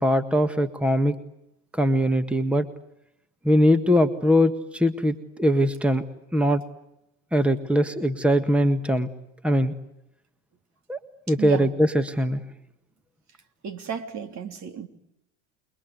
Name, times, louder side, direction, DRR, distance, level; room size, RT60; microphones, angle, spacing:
voice 1, 0.0-1.1 1.7-2.6 3.4-6.0 6.3-6.6 7.3-9.1 9.4-9.7 10.9-11.0 11.3-12.4, equal, 5° right, 10 dB, 1.7 m, -21 dB
voice 2, 11.4-11.7 13.6-14.9, right 6 dB, 50° right, 7 dB, 3.1 m, -33 dB
29.0 x 22.0 x 9.5 m, 0.83 s
supercardioid pair, 85°, 36 cm